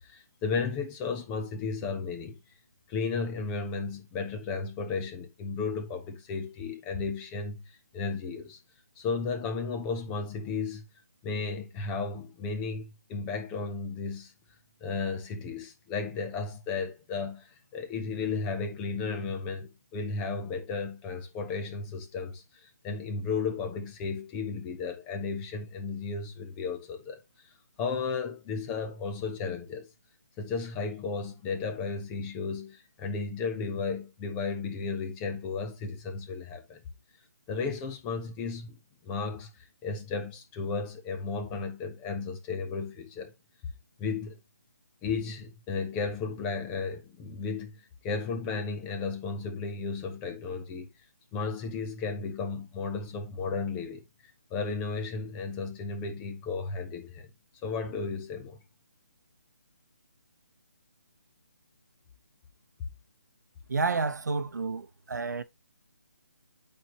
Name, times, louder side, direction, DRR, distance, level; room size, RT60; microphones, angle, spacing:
voice 1, 0.0-2.4 2.9-8.6 9.0-10.8 11.2-14.3 14.8-27.2 27.8-29.9 30.4-36.8 37.5-38.8 39.0-43.3 44.0-44.4 45.0-50.9 51.3-54.0 54.5-57.3 57.6-58.6, left 4 dB, 10° left, 0.5 m, -34 dB
voice 2, 63.7-65.4, right 4 dB, 75° right, 0.7 m, -30 dB
8.5 x 4.5 x 2.9 m
hypercardioid pair, 165°, 9 cm